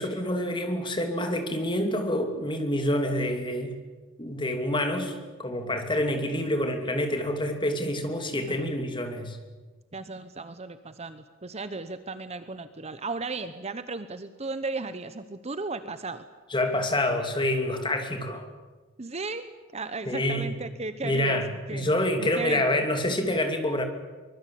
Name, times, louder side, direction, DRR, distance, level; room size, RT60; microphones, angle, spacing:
voice 1, 0.0-3.7 4.2-9.4 16.5-18.5 20.1-20.5 21.0-23.8, left 1 dB, 25° left, 6 dB, 2.8 m, -27 dB
voice 2, 9.9-16.2 19.0-22.9, right 3 dB, 30° right, 11 dB, 0.9 m, -36 dB
24.0 x 21.5 x 8.5 m, 1.3 s
head